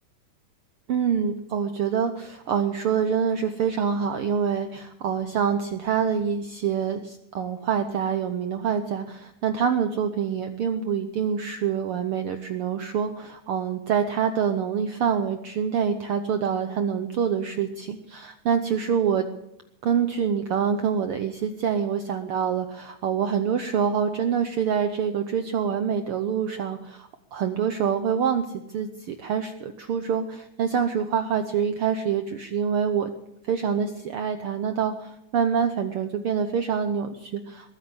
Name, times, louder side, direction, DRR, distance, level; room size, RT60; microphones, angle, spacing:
voice 1, 0.9-19.3 19.8-33.1 33.4-37.7, right 7 dB, 80° right, 8 dB, 1.2 m, -26 dB
21.0 x 9.5 x 7.2 m, 0.83 s
omnidirectional pair, 3.6 m